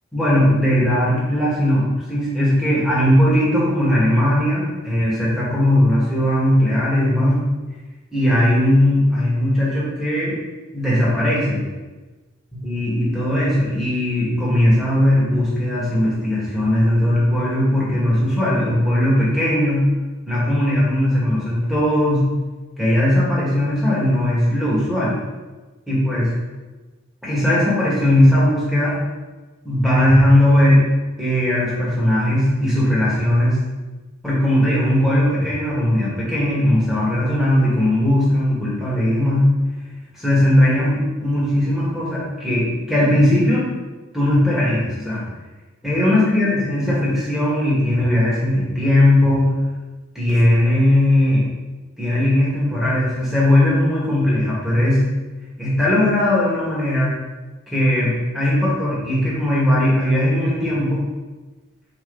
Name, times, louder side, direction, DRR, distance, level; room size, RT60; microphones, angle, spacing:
voice 1, 0.1-7.4 8.1-10.3 10.7-11.6 12.6-19.9 20.3-22.2 22.8-25.1 25.9-26.3 27.2-29.0 29.6-30.8 31.2-33.6 34.2-39.5 40.1-43.7 44.1-45.2 45.8-49.5 50.2-51.4 52.0-55.0 55.6-57.1 57.7-61.0, left 1 dB, ahead, -8 dB, 1.9 m, -18 dB
5.3 x 4.8 x 4.1 m, 1.2 s
head